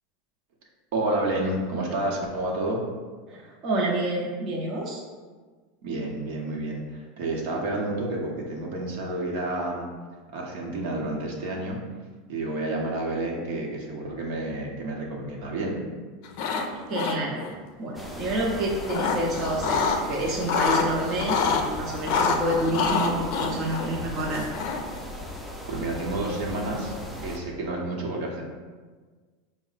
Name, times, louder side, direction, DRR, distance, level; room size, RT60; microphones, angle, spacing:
voice 1, 0.9-2.8 5.8-9.9 10.3-11.8 12.3-15.8 25.7-26.9 27.2-28.4, right 2 dB, 70° right, -1 dB, 0.9 m, -30 dB
voice 2, 3.3-5.0 16.9-17.4 17.8-24.4, right 1 dB, 40° right, -3 dB, 0.7 m, -28 dB
sound 1, 16.3-16.7 16.9-17.5 18.5-20.0 20.3-21.6 22.1-25.0, left 5 dB, 60° left, 0.4 m, -26 dB
sound 2, 17.9-27.4, left 1 dB, 5° right, 0.5 m, -38 dB
4.7 x 2.1 x 4.0 m, 1.4 s
supercardioid pair, 120°, 0 cm